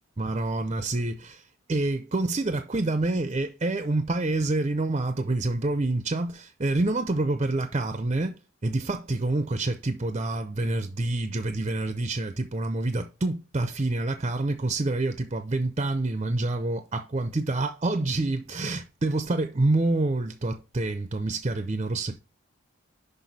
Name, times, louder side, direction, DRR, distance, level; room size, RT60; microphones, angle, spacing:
voice 1, 0.2-22.2, right 2 dB, 30° right, 0.5 m, -27 dB
6.0 x 5.5 x 4.1 m
head